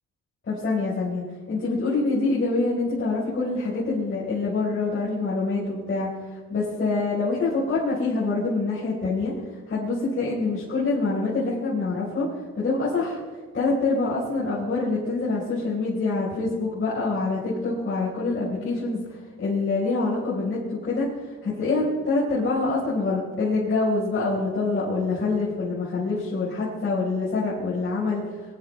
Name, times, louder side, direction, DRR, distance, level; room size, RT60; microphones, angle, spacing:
voice 1, 0.4-9.4 9.7-12.3 12.6-13.2 13.5-28.4, left 3 dB, 40° left, -8 dB, 4.3 m, -25 dB
21.0 x 11.0 x 3.3 m, 1.4 s
cardioid pair, 90°, 30 cm